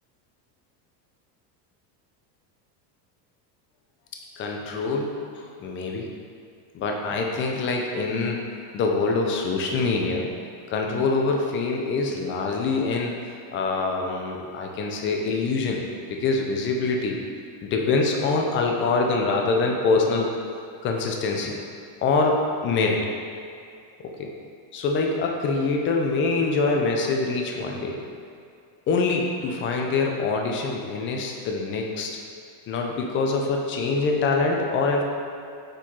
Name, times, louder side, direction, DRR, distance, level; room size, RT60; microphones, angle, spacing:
voice 1, 4.4-6.1 6.7-8.4 8.7-10.3 10.7-13.2 13.5-15.8 16.1-17.2 17.6-20.3 20.8-21.6 22.0-23.0 24.0-24.3 24.7-28.0 28.9-32.2 32.7-35.0, left 3 dB, 25° left, 1 dB, 0.3 m, -24 dB
4.4 x 3.7 x 3.0 m, 2.4 s
supercardioid pair, 115°, 50 cm